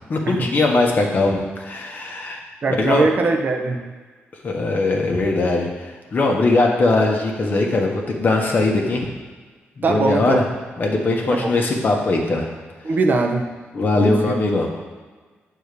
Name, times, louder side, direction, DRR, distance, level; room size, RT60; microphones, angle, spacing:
voice 1, 0.1-2.4 2.8-3.1 4.4-9.1 9.8-10.4 10.8-12.5 13.7-14.7, left 2 dB, 45° left, 1 dB, 1.4 m, -20 dB
voice 2, 2.6-3.9 9.8-10.4 11.3-11.6 12.8-13.5 14.0-14.3, right 3 dB, 40° right, 3 dB, 0.9 m, -21 dB
8.0 x 4.5 x 6.9 m, 1.4 s
cardioid pair, 105°, 4 cm